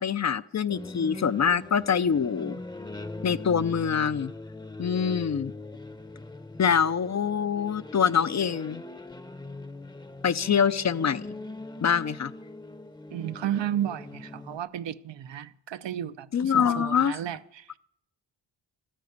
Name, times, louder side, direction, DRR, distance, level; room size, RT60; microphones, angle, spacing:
voice 1, 0.0-2.6 3.2-4.3 4.8-5.5 6.6-8.8 10.2-11.2 11.8-12.3 16.3-17.1, left 7 dB, 40° left, 0.5 m, -25 dB
sound 1, 0.7-14.6, left 2 dB, 10° left, 0.8 m, -41 dB
voice 2, 13.1-17.8, right 10 dB, 70° right, 0.8 m, -33 dB
13.0 x 10.0 x 9.3 m
wide cardioid pair, 100°, 45 cm